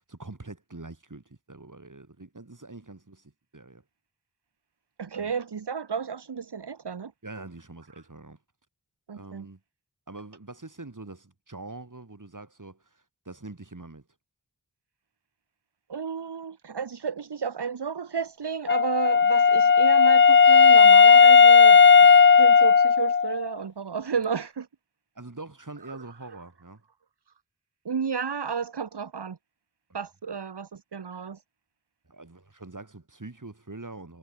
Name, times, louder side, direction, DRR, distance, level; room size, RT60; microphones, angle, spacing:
voice 1, 0.0-3.8 5.2-5.3 7.2-8.4 9.1-9.6 10.1-14.1 25.1-26.8 32.1-34.2, right 2 dB, 50° right, 6.4 m, -44 dB
voice 2, 5.0-7.1 9.1-9.5 15.9-21.8 22.4-24.7 25.9-26.0 27.8-29.4 29.9-31.4, right 6 dB, 80° right, 1.2 m, -32 dB
Wind instrument woodwind instrument, 18.7-23.5, left 6 dB, 30° left, 0.4 m, -15 dB
wide cardioid pair, 45°, 40 cm